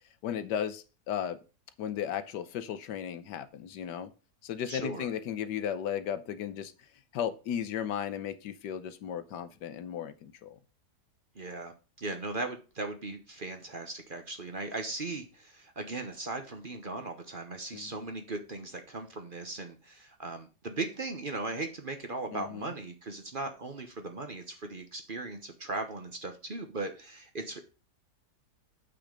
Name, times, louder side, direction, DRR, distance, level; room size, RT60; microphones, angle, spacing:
voice 1, 0.2-1.4 1.8-4.1 4.4-6.7 7.1-10.6 17.7-17.9 22.3-22.7, left 9 dB, 90° left, 1.4 m, -35 dB
voice 2, 4.7-5.1 11.3-27.6, right 2 dB, 35° right, 1.0 m, -38 dB
7.5 x 5.9 x 5.1 m
omnidirectional pair, 1.8 m